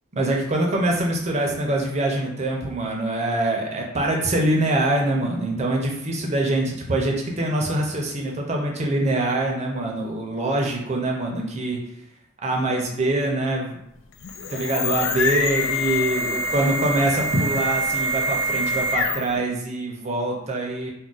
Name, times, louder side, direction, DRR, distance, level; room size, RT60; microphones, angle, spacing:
voice 1, 0.1-11.8 12.4-13.8 14.5-20.9, right 1 dB, 35° right, 0 dB, 0.5 m, -24 dB
sound 1, 14.1-19.4, left 1 dB, 80° left, 0.3 m, -25 dB
2.4 x 2.1 x 3.8 m, 0.79 s
head